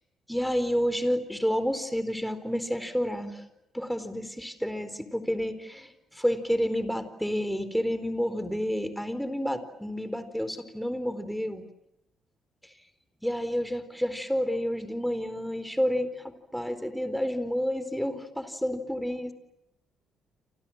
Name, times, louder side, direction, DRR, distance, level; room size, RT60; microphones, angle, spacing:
voice 1, 0.3-3.4 3.7-11.6 13.2-19.3, equal, ahead, 11 dB, 4.4 m, -30 dB
29.0 x 27.0 x 7.5 m, 0.85 s
cardioid pair, 90°, 0 cm